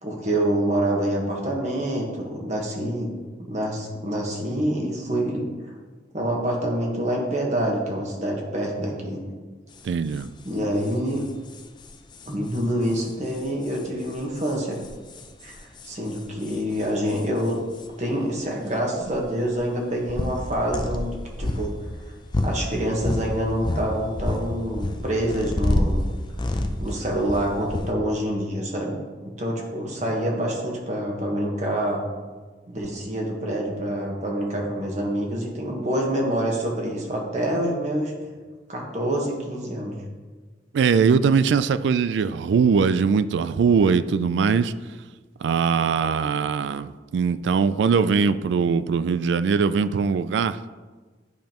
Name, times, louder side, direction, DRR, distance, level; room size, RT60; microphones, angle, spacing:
voice 1, 0.0-3.1 3.5-5.5 6.1-9.2 10.4-11.2 12.3-14.8 15.4-17.6 18.0-21.7 22.4-26.0 26.8-28.9 29.4-32.0 32.7-38.1 38.7-39.9, right 1 dB, 40° right, -1 dB, 1.3 m, -26 dB
sound 1, 9.8-9.9 10.1-10.3 10.5-10.6 10.8-17.9 18.7-18.8 19.0-23.3 23.6-27.9, left 1 dB, 25° left, 0.5 m, -29 dB
voice 2, 9.8-10.3 40.7-44.7 45.4-50.6, right 5 dB, 80° right, 14 dB, 0.3 m, -21 dB
10.5 x 5.2 x 3.0 m, 1.4 s
head